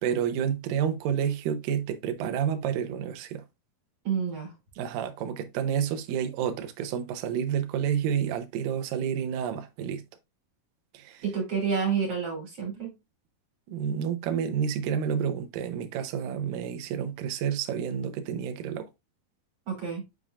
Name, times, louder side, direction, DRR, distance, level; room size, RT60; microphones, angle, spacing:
voice 1, 0.0-3.4 4.8-10.0 10.9-11.2 13.7-18.9, right 8 dB, 75° right, 2.3 m, -29 dB
voice 2, 4.0-4.5 11.2-12.9 19.7-20.0, right 6 dB, 40° right, 4.0 m, -29 dB
9.1 x 4.8 x 2.5 m
omnidirectional pair, 4.5 m